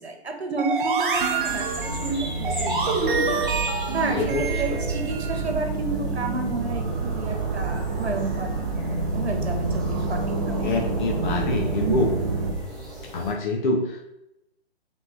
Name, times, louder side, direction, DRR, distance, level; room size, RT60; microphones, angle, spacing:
voice 1, 0.0-3.5 3.9-8.5 9.1-10.7 11.1-12.2, right 3 dB, 80° right, 4 dB, 1.0 m, -31 dB
sound 1, 0.6-5.5, right 4 dB, 55° right, 0.8 m, -27 dB
sound 2, 1.1-12.5, right 3 dB, 20° right, 0.4 m, -28 dB
sound 3, 1.4-13.3, right 2 dB, ahead, 1.1 m, -38 dB
voice 2, 4.1-4.8 10.6-12.1 13.1-14.0, left 2 dB, 45° left, 1 dB, 0.7 m, -26 dB
3.5 x 3.2 x 4.0 m, 0.86 s
figure-of-eight pair, 130°, 32 cm